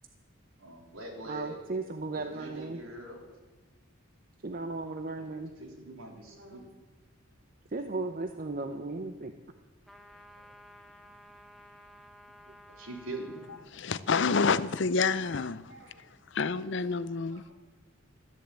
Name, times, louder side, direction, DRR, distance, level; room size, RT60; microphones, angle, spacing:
voice 1, 0.6-1.6 2.2-3.2 5.2-6.6 12.7-13.4, right 1 dB, 85° right, 3.8 m, -43 dB
voice 2, 1.3-2.8 4.4-5.5 7.7-9.3, right 3 dB, 45° right, 0.7 m, -36 dB
voice 3, 6.3-6.7 10.1-10.8 15.3-16.1 16.5-16.6 17.1-17.5, right 1 dB, 60° right, 5.1 m, -57 dB
sound 1, 9.8-13.7, equal, ahead, 1.1 m, -54 dB
voice 4, 13.7-15.6 16.3-17.4, left 4 dB, 60° left, 0.6 m, -28 dB
14.0 x 10.5 x 8.9 m
head